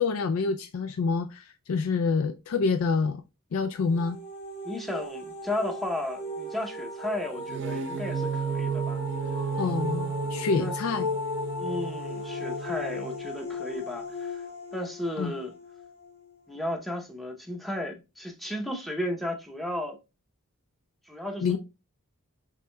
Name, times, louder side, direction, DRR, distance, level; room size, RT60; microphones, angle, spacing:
voice 1, 0.0-3.2 3.5-4.2 9.6-11.1 15.2-15.3 21.4-21.6, left 4 dB, 70° left, 0.3 m, -27 dB
sound 1, 3.7-16.6, left 2 dB, 45° left, 2.0 m, -36 dB
voice 2, 4.6-9.1 10.3-10.7 11.6-15.5 16.5-20.0 21.1-21.6, left 1 dB, ahead, 0.7 m, -34 dB
sound 2, 7.4-13.3, right 7 dB, 55° right, 0.5 m, -34 dB
6.0 x 3.5 x 2.2 m
head